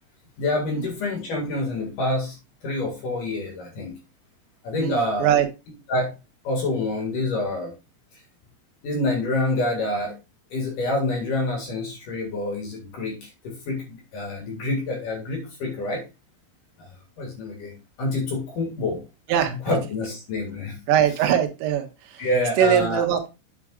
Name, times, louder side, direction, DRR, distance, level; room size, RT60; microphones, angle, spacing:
voice 1, 0.4-2.4 2.6-4.0 4.6-5.3 5.9-6.1 6.4-7.7 8.1-8.2 8.8-10.1 10.5-16.0 16.8-16.9 17.2-17.7 18.0-19.0 19.7-20.8 22.2-23.0, left 2 dB, 55° left, 2.7 m, -27 dB
voice 2, 4.8-5.5 19.3-19.5 20.9-22.3 22.6-23.3, right 9 dB, 90° right, 3.9 m, -21 dB
8.7 x 8.7 x 2.4 m
omnidirectional pair, 5.7 m